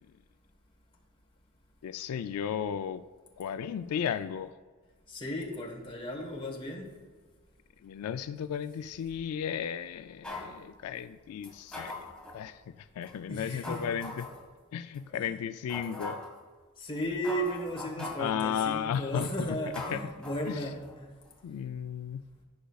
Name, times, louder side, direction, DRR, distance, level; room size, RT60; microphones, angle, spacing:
voice 1, 1.8-3.0 3.4-4.5 7.8-12.1 12.3-14.3 14.7-16.2 18.0-19.6 19.9-20.0 20.5-20.6 21.4-22.2, left 8 dB, 85° left, 12 dB, 0.3 m, -34 dB
voice 2, 5.1-6.9 13.3-14.0 15.1-15.4 16.8-21.1, equal, 25° left, 0 dB, 1.2 m, -35 dB
sound 1, 10.2-10.6 11.4-12.4 13.0-13.1 13.6-14.4 14.9-15.0 15.7-16.4 17.0-17.1 17.2-18.4 18.9-19.2 19.7-21.0 21.3-21.4, left 2 dB, 5° left, 1.2 m, -41 dB
15.0 x 5.1 x 2.3 m, 1.4 s
head